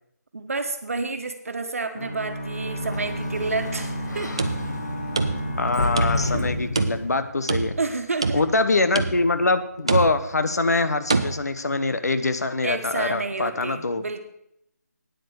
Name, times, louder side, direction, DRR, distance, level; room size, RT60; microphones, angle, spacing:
voice 1, 0.3-4.3 6.3-6.5 7.8-8.4 12.6-14.2, right 3 dB, 50° right, 7 dB, 1.4 m, -30 dB
sound 1, 2.0-6.9, equal, 40° left, 1.7 m, -33 dB
Sliding door, 2.6-7.3, left 2 dB, 80° left, 2.1 m, -30 dB
sound 2, 4.1-5.7 6.0-6.4 6.8-7.9 8.2-8.7 9.0-9.4 9.9-10.4 11.1-11.3, right 3 dB, 20° right, 0.4 m, -26 dB
voice 2, 5.6-7.8 8.3-14.0, left 3 dB, 65° left, 11 dB, 1.1 m, -24 dB
9.4 x 8.4 x 6.6 m, 0.77 s
hypercardioid pair, 175°, 9 cm